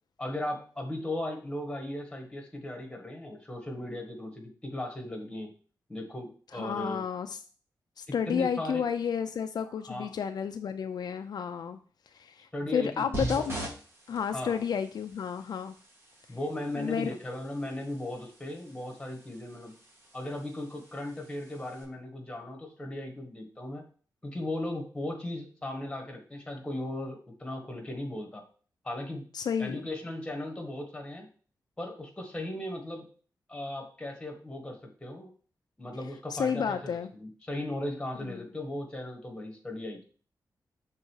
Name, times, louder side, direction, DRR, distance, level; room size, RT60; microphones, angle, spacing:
voice 1, 0.2-5.5 5.9-7.0 8.1-8.9 9.9-10.1 12.5-13.5 14.3-14.6 16.3-19.7 20.1-23.9 24.2-28.4 28.8-29.3 29.6-31.3 31.8-33.1 33.5-35.3 35.8-40.0, left 1 dB, 10° left, 2 dB, 1.5 m, -37 dB
voice 2, 6.5-7.4 8.0-11.8 12.1-13.7 14.1-15.7 16.7-17.1 29.3-29.8 36.3-37.1 38.2-38.5, left 7 dB, 70° left, 7 dB, 0.4 m, -31 dB
sound 1, 13.1-21.8, right 1 dB, 35° right, 1.6 m, -43 dB
6.5 x 3.8 x 4.7 m, 0.42 s
wide cardioid pair, 145°, 7 cm